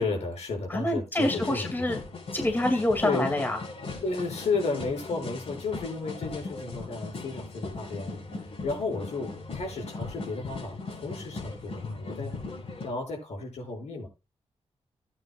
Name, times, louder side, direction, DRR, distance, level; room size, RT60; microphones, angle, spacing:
voice 1, 0.0-2.0 3.0-3.3 4.0-12.3 12.8-14.1, left 3 dB, 85° left, 1 dB, 6.8 m, -33 dB
voice 2, 0.7-2.0 2.3-3.6, left 1 dB, 20° left, 4 dB, 2.4 m, -26 dB
sound 1, 1.2-12.9, left 3 dB, 65° left, 6.3 m, -39 dB
16.0 x 9.2 x 2.4 m, 0.28 s
wide cardioid pair, 100°, 11 cm